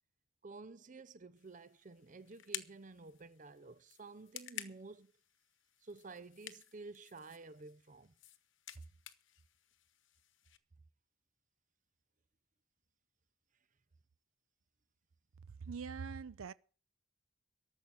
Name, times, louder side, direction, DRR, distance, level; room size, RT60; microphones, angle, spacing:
voice 1, 0.4-5.1 5.8-8.1 8.8-8.9, right 3 dB, 35° right, 0.6 m, -52 dB
sound 1, 1.4-10.6, left 12 dB, 60° left, 1.1 m, -52 dB
voice 2, 15.6-16.5, right 5 dB, 80° right, 0.6 m, -43 dB
13.5 x 7.3 x 9.1 m
head